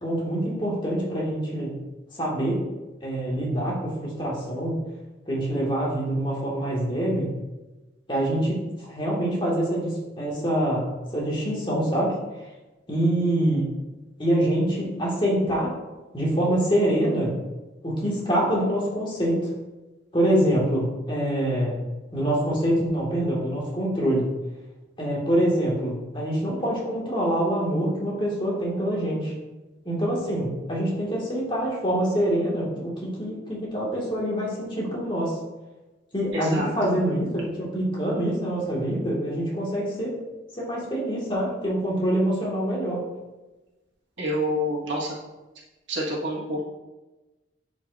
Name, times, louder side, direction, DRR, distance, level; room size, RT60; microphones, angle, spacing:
voice 1, 0.0-1.7 2.1-2.6 3.0-4.7 5.3-7.3 8.1-12.1 12.9-13.7 14.2-15.7 16.1-17.3 17.8-19.5 20.1-21.7 22.1-24.3 25.0-29.3 29.9-35.3 36.1-40.1 40.6-43.0, right 1 dB, 25° left, -4 dB, 2.1 m, -25 dB
voice 2, 36.3-36.7 44.2-45.2 45.9-46.6, equal, 85° right, -5 dB, 1.8 m, -27 dB
10.5 x 5.2 x 2.7 m, 1.1 s
head